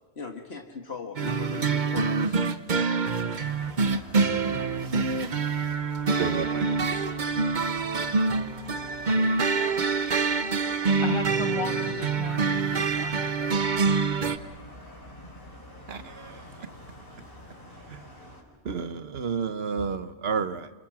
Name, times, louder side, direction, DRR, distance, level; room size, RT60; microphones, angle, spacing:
voice 1, 0.2-2.4, left 4 dB, 75° left, 4 dB, 1.9 m, -39 dB
sound 1, 1.2-14.4, right 4 dB, 50° right, 1.1 m, -26 dB
sound 2, 3.2-18.4, left 1 dB, 55° left, 4.8 m, -48 dB
voice 2, 6.2-6.8 15.9-16.4 17.9-18.0 18.6-20.7, right 6 dB, 70° right, 12 dB, 1.2 m, -31 dB
voice 3, 11.0-13.9, left 5 dB, 30° left, 11 dB, 0.9 m, -36 dB
28.0 x 26.5 x 6.1 m, 1.1 s
omnidirectional pair, 1.1 m